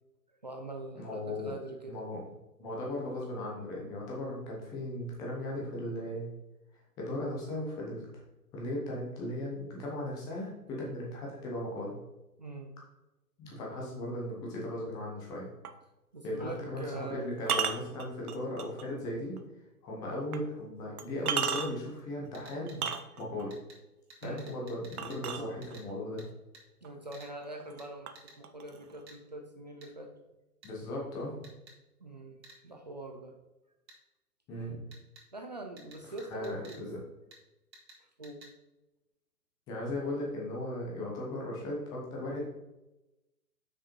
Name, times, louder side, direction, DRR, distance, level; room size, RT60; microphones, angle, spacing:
voice 1, 0.4-2.0 12.4-12.7 16.1-17.3 24.2-24.5 26.8-30.1 32.0-32.4 32.6-33.3 34.6-34.7 35.3-37.0 38.2-38.4, right 2 dB, 30° right, 3 dB, 0.4 m, -43 dB
voice 2, 1.0-1.5 1.9-2.2 2.6-6.3 7.0-8.1 8.5-12.0 13.4-15.5 16.2-19.4 19.8-22.9 23.2-23.5 24.2-26.2 30.6-31.5 34.5-34.8 36.3-37.0 39.7-42.4, left 1 dB, 10° left, -3 dB, 0.7 m, -37 dB
sound 1, 15.6-15.8 17.4-18.8 19.4-19.5 20.3-20.4 21.0-21.9 22.7-23.4 25.0-25.9 26.8-26.9 27.4-27.8 28.1-29.0, right 7 dB, 65° right, 0.8 m, -34 dB
sound 2, 22.3-22.8 23.5-23.8 24.1-25.4 25.6-25.9 26.2-26.3 26.5-26.6 27.1-27.3 27.8-27.9 28.2-28.4 29.1-29.2 29.8-29.9 30.6-30.7 31.4-31.8 32.4-32.6 33.9-34.0 34.9-35.2 35.8-36.8 37.3-37.4 37.7-38.0 38.2-38.5, right 2 dB, 85° right, 2.4 m, -53 dB
6.1 x 4.8 x 4.4 m, 0.99 s
hypercardioid pair, 150°, 49 cm